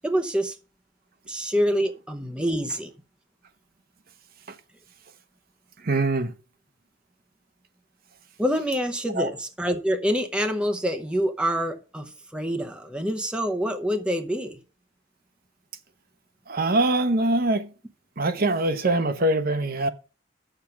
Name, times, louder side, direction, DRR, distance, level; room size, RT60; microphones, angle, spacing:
voice 1, 0.0-0.6 1.3-2.9 8.4-14.6, equal, 5° right, 0.8 m, -26 dB
voice 2, 5.8-6.3 9.1-9.3 16.5-17.7 18.2-19.9, right 2 dB, 45° right, 0.9 m, -23 dB
8.1 x 6.9 x 5.8 m
head